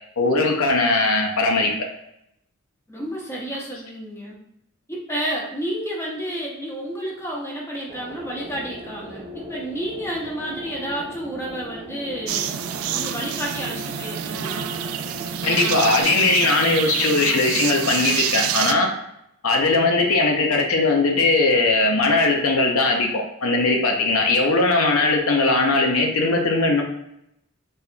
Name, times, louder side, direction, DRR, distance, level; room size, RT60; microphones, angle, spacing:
voice 1, 0.2-1.7 15.4-18.9 19.4-26.8, left 3 dB, 80° left, 2 dB, 0.7 m, -19 dB
voice 2, 2.9-4.4 4.9-12.6 12.9-14.7, right 1 dB, 15° left, -3 dB, 0.9 m, -31 dB
sound 1, 7.9-16.0, equal, 30° right, 0.5 m, -38 dB
sound 2, 12.3-18.7, right 9 dB, 85° right, 0.3 m, -27 dB
4.1 x 3.5 x 2.3 m, 0.78 s
head